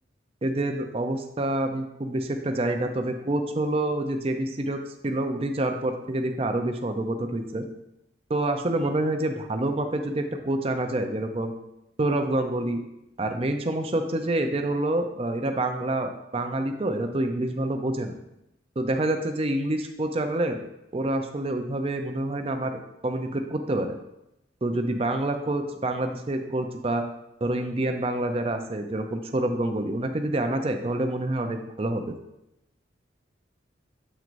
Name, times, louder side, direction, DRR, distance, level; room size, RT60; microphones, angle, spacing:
voice 1, 0.4-7.6 8.3-11.5 12.0-12.8 13.2-18.1 18.8-20.6 20.9-22.7 23.0-23.9 24.6-27.0 27.4-32.1, right 1 dB, 30° right, 5 dB, 0.5 m, -27 dB
7.4 x 6.0 x 2.6 m, 0.85 s
head